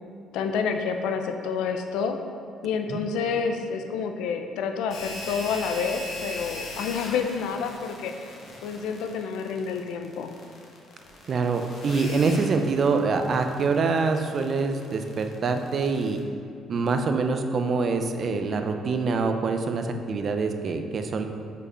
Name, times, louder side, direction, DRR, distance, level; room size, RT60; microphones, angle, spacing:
voice 1, 0.3-2.2 2.6-8.1 8.6-10.3, left 6 dB, 85° left, 6 dB, 0.5 m, -28 dB
sound 1, 4.9-16.2, left 1 dB, 60° left, 1.2 m, -40 dB
voice 2, 11.3-16.2 16.7-21.3, right 4 dB, 50° right, 6 dB, 0.5 m, -25 dB
5.3 x 4.2 x 5.0 m, 2.4 s
cardioid pair, 85°, 0 cm